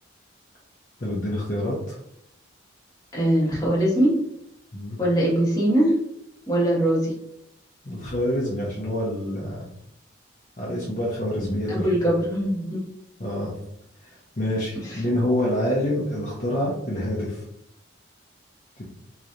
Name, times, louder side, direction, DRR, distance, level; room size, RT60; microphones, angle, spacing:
voice 1, 1.0-2.0 4.7-5.0 7.8-9.7 10.6-11.9 13.2-13.5 14.0-17.4 18.8-18.9, left 1 dB, 40° left, -5 dB, 0.8 m, -27 dB
voice 2, 3.1-4.1 5.0-5.9 6.5-7.1 11.7-12.9 14.8-15.0, right 1 dB, 15° left, -7 dB, 1.4 m, -21 dB
4.0 x 3.1 x 2.5 m, 0.75 s
head